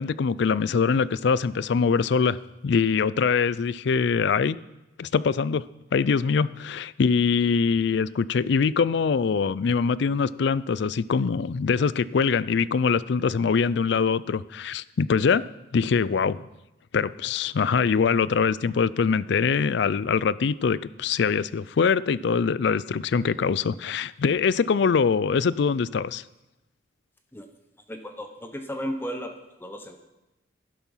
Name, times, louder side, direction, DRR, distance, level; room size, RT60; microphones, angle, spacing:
voice 1, 0.0-2.4 2.6-4.6 5.0-5.7 5.9-15.4 15.7-16.4 16.9-26.2, left 5 dB, 65° left, 19 dB, 0.4 m, -23 dB
voice 2, 27.9-30.0, equal, 10° left, 5 dB, 0.9 m, -34 dB
11.5 x 11.5 x 5.6 m, 0.97 s
head